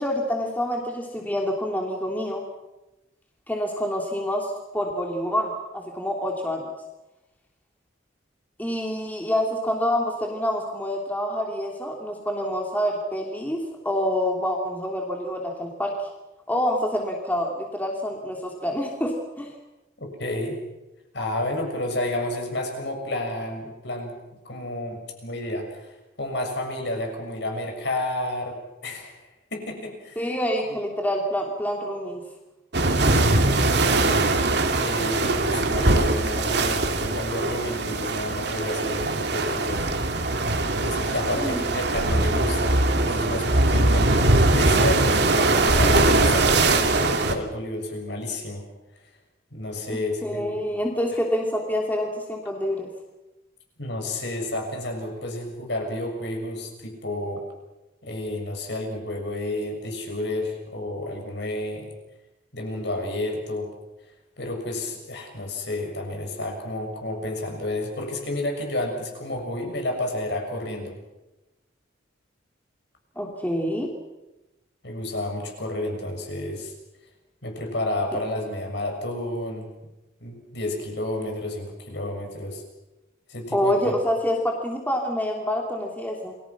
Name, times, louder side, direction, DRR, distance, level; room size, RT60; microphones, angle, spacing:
voice 1, 0.0-2.4 3.5-6.7 8.6-15.9 16.5-19.5 30.2-32.2 41.4-41.6 49.9-52.9 73.1-73.9 83.5-86.3, equal, 10° left, 0 dB, 3.0 m, -27 dB
voice 2, 20.2-20.6 21.1-24.2 24.4-28.6 28.8-29.2 29.5-30.3 32.9-34.3 34.8-39.9 40.8-48.7 49.5-50.6 53.8-57.5 58.0-61.9 62.5-63.7 64.4-70.9 74.8-76.7 77.4-79.7 80.2-82.6 83.3-83.9, left 1 dB, 60° left, 3 dB, 7.1 m, -31 dB
sound 1, 32.7-47.4, right 2 dB, 55° right, 2.5 m, -21 dB
29.5 x 22.5 x 6.2 m, 1.0 s
head